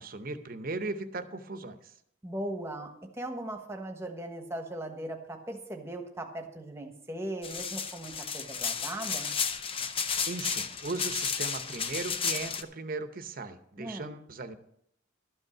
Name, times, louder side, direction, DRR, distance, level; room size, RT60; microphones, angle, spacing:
voice 1, 0.0-1.9 10.2-14.6, right 3 dB, 45° right, 10 dB, 0.8 m, -37 dB
voice 2, 2.2-9.4 13.8-14.2, right 1 dB, 15° right, 4 dB, 1.2 m, -38 dB
sound 1, 7.4-12.6, left 6 dB, 30° left, 0.6 m, -33 dB
12.5 x 5.4 x 7.3 m, 0.73 s
head